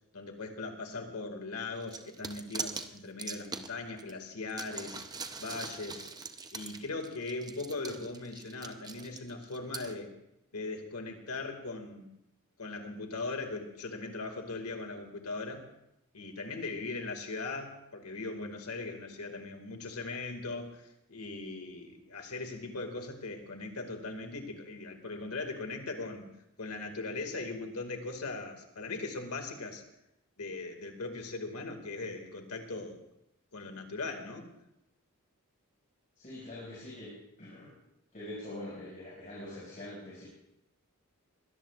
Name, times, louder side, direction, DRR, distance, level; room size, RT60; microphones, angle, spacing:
voice 1, 0.1-5.1 5.4-6.1 6.5-10.1 10.5-12.1 12.6-15.6 16.1-26.3 26.6-29.8 30.4-33.0 33.5-34.5, left 3 dB, 90° left, 4 dB, 2.1 m, -39 dB
sound 1, 1.8-4.1 4.5-9.9, right 4 dB, 20° right, 0.7 m, -42 dB
voice 2, 36.2-37.7 38.1-40.2, left 1 dB, 35° left, -7 dB, 6.0 m, -44 dB
22.5 x 17.5 x 2.5 m, 0.84 s
head